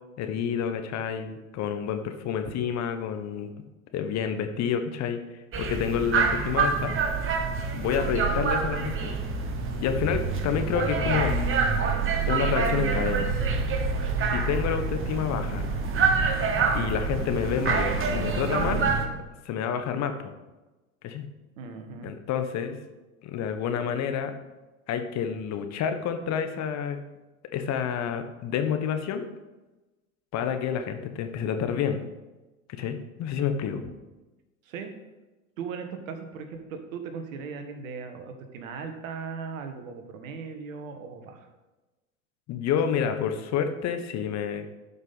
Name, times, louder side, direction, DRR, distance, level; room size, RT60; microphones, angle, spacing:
voice 1, 0.2-3.5 3.9-5.2 5.6-6.9 7.7-9.2 9.8-11.3 12.3-13.3 14.3-15.6 16.7-18.8 19.4-20.3 21.0-21.3 22.0-22.8 23.2-24.3 24.9-27.0 27.5-29.2 30.3-32.0 32.8-33.8 42.5-44.7, left 8 dB, 40° left, 7 dB, 1.1 m, -29 dB
sound 1, 5.5-19.1, right 4 dB, 30° right, 1.3 m, -26 dB
voice 2, 21.6-22.1 33.7-33.9 34.6-34.9 35.6-41.5, right 5 dB, 70° right, 6 dB, 1.5 m, -38 dB
12.0 x 5.5 x 4.1 m, 1.1 s
hypercardioid pair, 90°, 42 cm